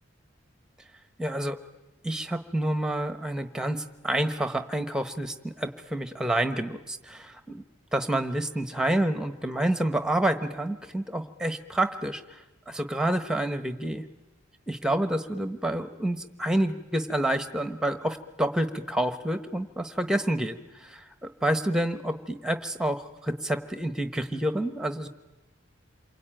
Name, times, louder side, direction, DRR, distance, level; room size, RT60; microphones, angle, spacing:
voice 1, 1.2-1.6 2.0-7.6 7.9-12.4 12.7-14.0 14.7-25.1, right 1 dB, 5° right, 9 dB, 1.1 m, -28 dB
27.5 x 23.0 x 9.1 m, 1.1 s
head